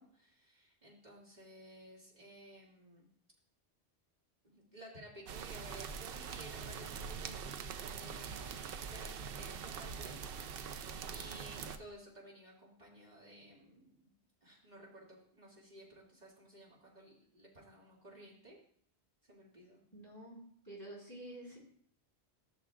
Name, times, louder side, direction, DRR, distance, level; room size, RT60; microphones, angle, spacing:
voice 1, 0.0-3.1 4.4-10.8 11.1-14.1 14.4-18.6 19.2-19.8, right 1 dB, 40° right, -5 dB, 2.7 m, -55 dB
sound 1, 5.3-11.8, right 6 dB, 65° right, 0.7 m, -43 dB
voice 2, 19.9-21.6, right 1 dB, 20° left, -7 dB, 4.3 m, -49 dB
15.0 x 6.6 x 2.4 m, 0.62 s
omnidirectional pair, 1.1 m